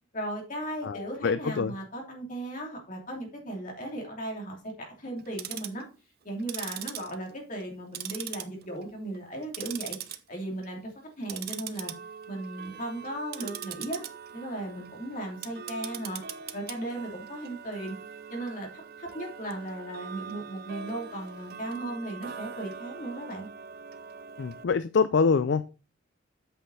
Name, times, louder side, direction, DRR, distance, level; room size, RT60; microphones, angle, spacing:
voice 1, 0.1-5.8 6.2-11.9 12.3-14.0 14.3-16.2 16.5-17.9 18.3-23.5, right 1 dB, 40° left, 0 dB, 3.1 m, -36 dB
voice 2, 0.8-1.7 24.4-25.6, left 5 dB, 60° left, 14 dB, 0.4 m, -25 dB
Tick-tock, 5.2-5.8 6.4-7.7 7.9-8.8 9.1-10.2 10.5-10.8 11.2-24.6, right 8 dB, 50° right, 0.7 m, -41 dB
8.1 x 6.3 x 4.1 m, 0.33 s
head